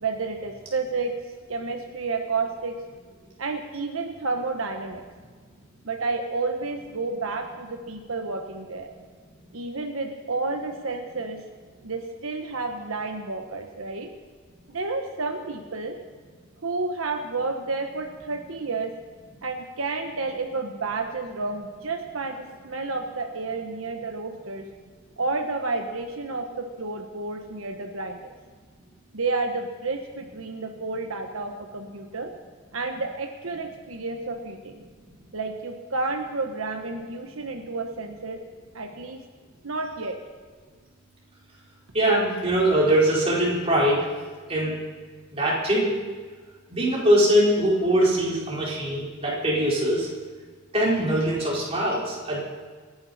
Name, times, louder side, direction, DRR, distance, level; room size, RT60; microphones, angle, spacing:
voice 1, 0.0-1.1 1.5-2.8 3.4-5.0 5.8-8.9 9.5-11.4 11.8-14.1 14.7-15.9 16.6-18.9 19.4-24.6 25.2-28.3 29.1-32.3 32.7-34.8 35.3-38.4 38.7-39.2 39.6-40.2, right 3 dB, 85° right, 4 dB, 1.3 m, -30 dB
voice 2, 41.9-44.1 44.5-44.8 45.3-45.9 46.7-50.1 50.7-52.4, right 1 dB, 30° right, -5 dB, 4.6 m, -22 dB
26.5 x 10.5 x 4.3 m, 1.5 s
head